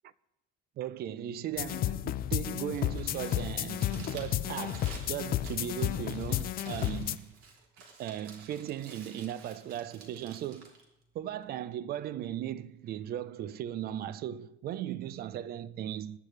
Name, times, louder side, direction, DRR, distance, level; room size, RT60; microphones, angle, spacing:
voice 1, 0.8-7.3 8.0-10.7 11.1-16.2, right 11 dB, 50° right, 0.5 m, -37 dB
sound 1, 1.6-7.2, left 13 dB, 45° left, 0.4 m, -32 dB
Crumpling crinkling, 2.7-11.7, right 4 dB, 85° right, 3.2 m, -52 dB
22.5 x 10.5 x 3.3 m
cardioid pair, 155°, 21 cm